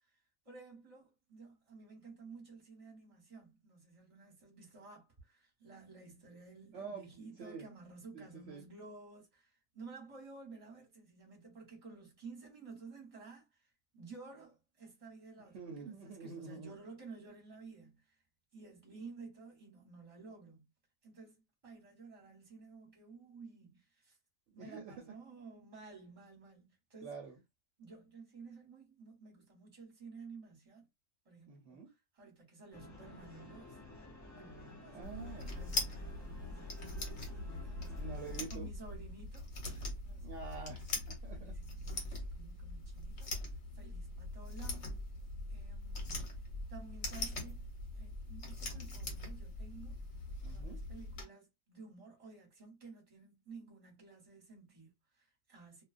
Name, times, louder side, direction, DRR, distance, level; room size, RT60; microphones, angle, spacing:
voice 1, 0.4-18.1 18.5-20.6 21.0-24.2 24.5-27.1 27.8-30.9 31.2-33.8 34.3-38.2 38.5-40.3 40.7-40.9 41.3-44.9 45.5-46.4 46.7-47.6 47.9-50.0 50.4-55.8, right 4 dB, 25° right, 1.1 m, -54 dB
voice 2, 6.7-7.1 7.4-7.7 8.1-8.6 15.4-16.7 24.6-25.0 27.0-27.4 31.5-31.9 34.9-35.5 37.9-38.7 40.2-41.5 50.4-50.8, right 5 dB, 65° right, 0.9 m, -47 dB
sound 1, 32.7-38.5, left 2 dB, 30° left, 0.3 m, -53 dB
sound 2, 35.0-51.2, left 2 dB, 65° left, 1.3 m, -42 dB
2.4 x 2.3 x 2.4 m
omnidirectional pair, 1.4 m